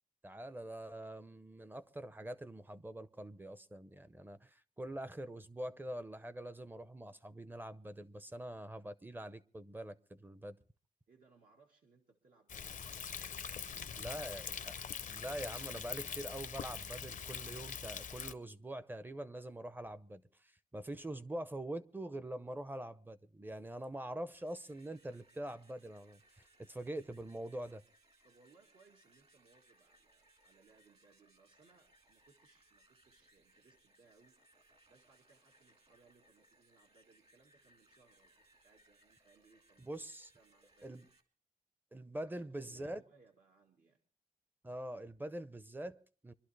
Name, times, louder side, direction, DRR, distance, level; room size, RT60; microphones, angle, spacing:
voice 1, 0.2-10.6 14.0-14.7 15.1-27.8 39.8-40.3 40.8-41.1 41.9-43.0 44.6-46.3, right 1 dB, 15° right, 0.6 m, -44 dB
voice 2, 11.1-14.9 28.2-34.4 34.9-40.1 40.3-41.0 42.2-44.0, right 4 dB, 75° right, 1.9 m, -68 dB
Thunder, 12.5-18.3, left 7 dB, 60° left, 0.6 m, -43 dB
sound 1, 24.2-41.2, right 1 dB, 45° right, 1.9 m, -69 dB
25.0 x 12.0 x 3.3 m
wide cardioid pair, 170°, 15 cm